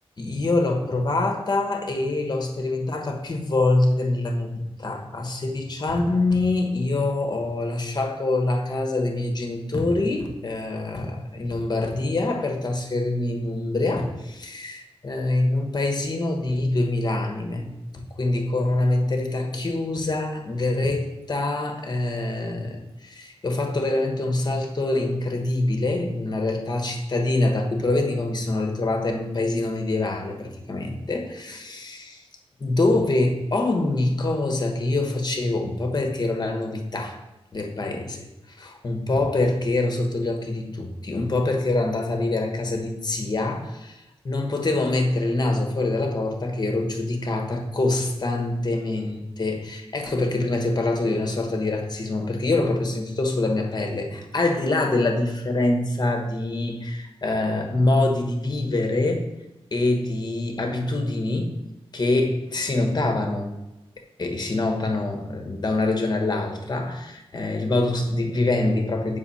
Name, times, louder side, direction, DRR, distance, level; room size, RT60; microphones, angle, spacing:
voice 1, 0.2-17.7 17.9-32.2 32.6-37.2 37.5-44.0 44.2-59.3 59.7-61.5 61.9-63.5 64.2-69.2, left 2 dB, 40° left, 3 dB, 1.2 m, -25 dB
6.9 x 5.4 x 4.2 m, 0.96 s
wide cardioid pair, 115°, 10 cm